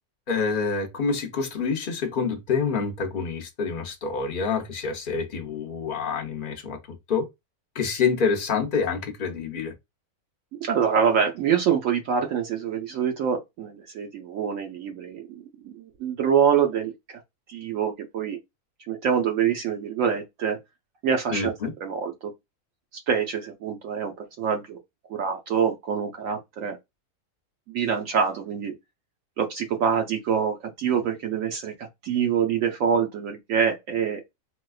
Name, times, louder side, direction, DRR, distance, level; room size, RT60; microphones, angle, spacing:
voice 1, 0.3-6.8 7.1-7.3 7.7-9.7 21.3-21.7, left 5 dB, 50° left, 0.6 m, -27 dB
voice 2, 10.6-17.2 17.5-18.4 18.9-20.6 21.0-21.5 21.8-22.3 23.1-24.8 25.1-26.8 27.7-28.7 29.4-34.4, right 7 dB, 70° right, 0.9 m, -25 dB
4.1 x 2.2 x 2.3 m
omnidirectional pair, 1.6 m